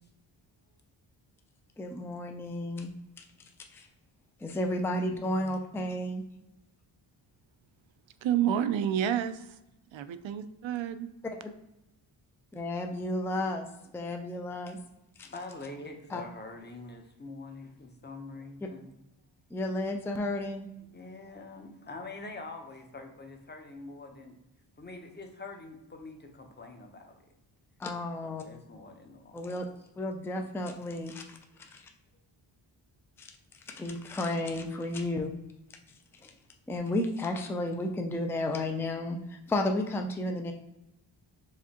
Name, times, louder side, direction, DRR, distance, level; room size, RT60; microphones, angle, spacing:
voice 1, 1.8-2.9 3.2-3.3 3.7-3.9 4.4-6.2 11.2-11.4 12.5-14.8 15.2-15.3 16.1-16.2 19.5-20.7 27.8-28.4 29.3-29.6 30.0-31.9 33.2-35.3 36.1-36.3 36.7-40.5, left 1 dB, 5° left, 3 dB, 0.4 m, -33 dB
voice 2, 8.2-9.4 9.9-11.1, right 9 dB, 75° right, 11 dB, 0.5 m, -29 dB
voice 3, 15.2-18.9 20.9-24.4 24.8-27.2 28.2-29.4, left 3 dB, 20° left, 3 dB, 0.8 m, -45 dB
4.9 x 3.4 x 2.9 m, 0.90 s
cardioid pair, 100°, 46 cm